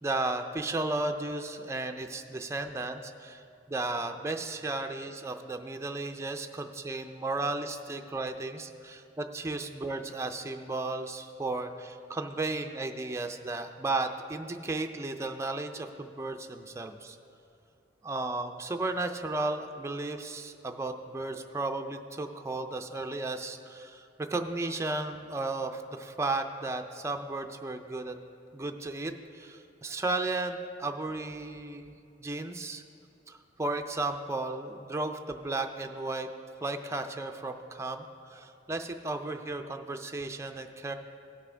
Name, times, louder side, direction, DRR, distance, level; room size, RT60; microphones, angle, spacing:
voice 1, 0.0-3.4 3.7-17.2 18.0-28.2 28.5-32.8 33.3-36.3 36.6-40.9, right 2 dB, 15° right, 5 dB, 0.4 m, -34 dB
16.5 x 6.0 x 3.3 m, 2.5 s
head